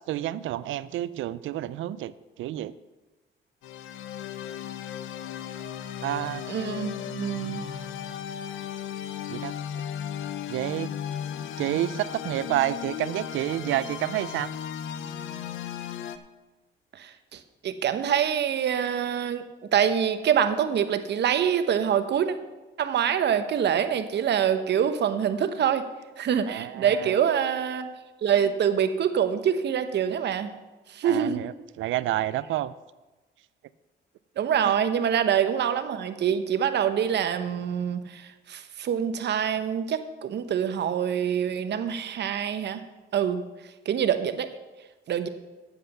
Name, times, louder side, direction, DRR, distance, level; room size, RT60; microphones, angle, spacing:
voice 1, 0.1-2.7 6.0-6.4 9.3-9.5 10.5-10.9 11.6-14.5 26.5-27.2 31.0-32.7 34.6-34.7, right 13 dB, 80° right, 17 dB, 0.5 m, -29 dB
sound 1, 3.6-16.2, left 9 dB, 80° left, 0.7 m, -36 dB
voice 2, 6.5-7.6 16.9-19.4 19.7-22.3 22.8-25.8 26.2-27.9 28.2-30.5 30.9-31.4 34.4-42.8 43.1-43.5 43.9-44.5 45.1-45.3, right 8 dB, 60° right, 10 dB, 0.9 m, -25 dB
7.9 x 7.9 x 6.7 m, 1.2 s
cardioid pair, 90°, 20 cm